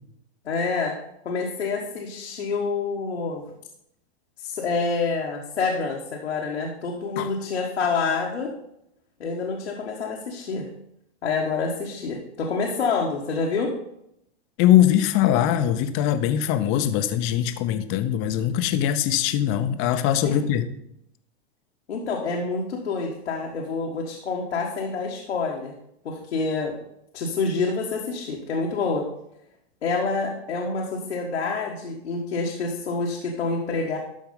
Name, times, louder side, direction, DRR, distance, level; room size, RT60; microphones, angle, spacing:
voice 1, 0.4-0.9 1.2-3.4 4.4-8.5 9.2-10.7 11.2-13.7 20.2-20.4 21.9-25.7 26.0-26.7 27.1-29.1 29.8-34.0, left 4 dB, 90° left, -1 dB, 1.6 m, -27 dB
voice 2, 14.6-20.7, left 11 dB, 40° left, 10 dB, 0.8 m, -21 dB
12.5 x 4.7 x 5.3 m, 0.77 s
hypercardioid pair, 120°, 33 cm